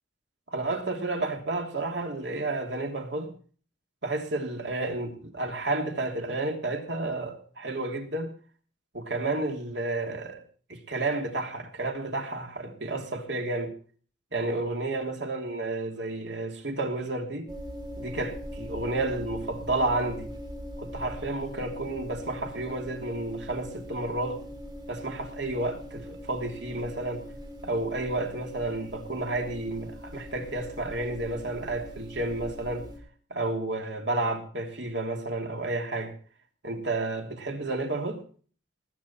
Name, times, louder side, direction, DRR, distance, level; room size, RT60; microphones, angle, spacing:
voice 1, 0.5-3.3 4.0-8.3 8.9-10.4 10.7-13.7 14.3-17.5 18.0-20.3 20.8-24.4 24.9-27.2 27.6-32.9 33.3-36.1 36.6-38.2, right 2 dB, 65° right, 3.0 m, -31 dB
sound 1, 17.5-33.0, equal, 25° right, 4.2 m, -41 dB
20.0 x 9.5 x 4.4 m
head